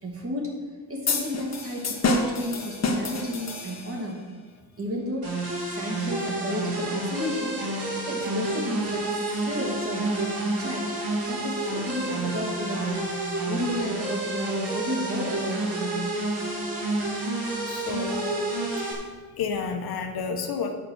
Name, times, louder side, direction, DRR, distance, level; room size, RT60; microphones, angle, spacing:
voice 1, 0.0-0.6 0.9-4.3 4.8-5.3 5.7-13.1 13.5-16.1, equal, 35° right, -1 dB, 2.4 m, -32 dB
sound 1, 1.1-4.1, left 3 dB, 40° left, 1.5 m, -28 dB
sound 2, 5.2-18.9, right 2 dB, 70° right, 3.5 m, -29 dB
voice 2, 17.7-18.4 18.8-18.9 19.4-20.7, left 5 dB, 70° left, 4 dB, 1.3 m, -30 dB
8.8 x 7.7 x 6.3 m, 1.3 s
wide cardioid pair, 155°, 38 cm